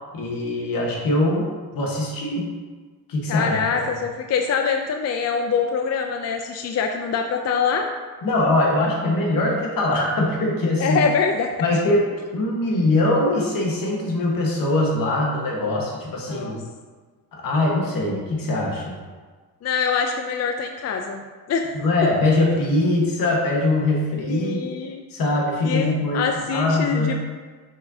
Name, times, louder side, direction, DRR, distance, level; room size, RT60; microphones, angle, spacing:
voice 1, 0.1-2.5 3.1-3.8 8.2-11.0 11.6-12.0 12.3-16.5 17.3-19.0 21.7-24.6 25.1-27.2, left 2 dB, 60° left, -2 dB, 1.5 m, -22 dB
voice 2, 3.3-7.9 10.8-11.5 16.3-16.6 19.6-21.2 21.5-21.7 24.3-25.0 25.6-27.2, left 6 dB, 45° left, 4 dB, 0.5 m, -24 dB
6.2 x 5.5 x 2.8 m, 1.4 s
cardioid pair, 110°, 38 cm